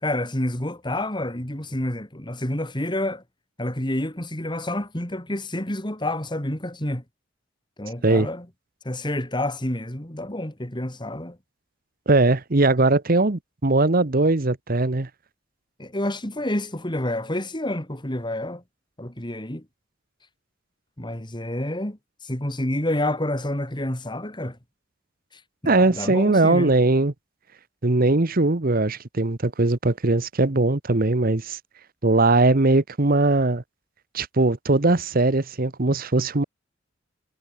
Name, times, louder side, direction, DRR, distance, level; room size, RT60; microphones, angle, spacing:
voice 1, 0.0-3.2 3.6-7.0 7.8-8.5 8.8-11.4 15.8-18.6 19.0-19.6 21.0-24.6 25.6-26.7, left 1 dB, 20° left, 2.8 m, -28 dB
voice 2, 12.1-15.1 25.6-27.1 27.8-31.6 32.0-33.6 34.1-36.4, right 2 dB, 45° right, 1.1 m, -20 dB
head